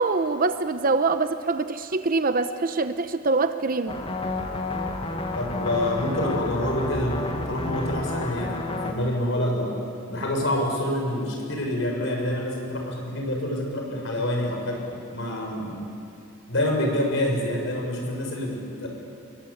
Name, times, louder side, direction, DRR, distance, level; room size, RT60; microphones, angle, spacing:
voice 1, 0.0-4.0, right 3 dB, 45° right, 10 dB, 0.9 m, -24 dB
sound 1, 3.9-8.9, left 2 dB, 25° left, 2.0 m, -30 dB
voice 2, 5.3-9.8 10.1-14.8 15.1-15.8 16.5-18.9, left 1 dB, 65° left, 1 dB, 6.5 m, -27 dB
28.5 x 22.0 x 8.7 m, 2.5 s
head